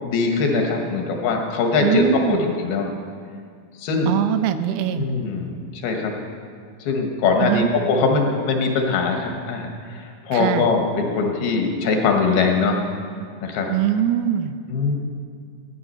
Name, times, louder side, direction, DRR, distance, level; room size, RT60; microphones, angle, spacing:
voice 1, 0.0-2.9 3.8-4.2 5.0-6.1 6.8-9.7 9.9-12.9 13.4-13.7 14.7-15.0, left 4 dB, 85° left, 2 dB, 3.2 m, -22 dB
voice 2, 1.8-2.5 4.1-5.1 7.4-7.7 10.3-10.7 13.7-14.5, right 10 dB, 90° right, 10 dB, 2.5 m, -22 dB
13.5 x 9.8 x 5.6 m, 2.2 s
omnidirectional pair, 4.2 m